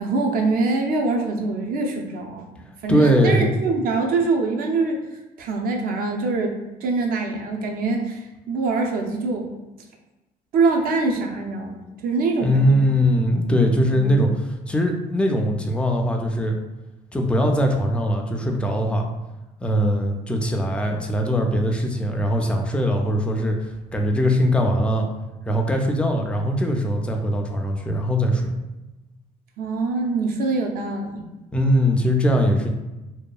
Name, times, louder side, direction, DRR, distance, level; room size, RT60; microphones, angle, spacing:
voice 1, 0.0-2.5 2.8-5.0 5.4-6.5 6.8-9.5 10.5-12.9 13.9-14.1 29.6-31.3, right 3 dB, 60° right, 2 dB, 0.5 m, -24 dB
voice 2, 2.9-3.5 12.4-16.5 17.1-19.1 19.6-25.1 25.4-28.5 31.5-32.7, equal, 5° left, 2 dB, 0.3 m, -21 dB
2.8 x 2.2 x 2.3 m, 1.0 s
cardioid pair, 110°, 17 cm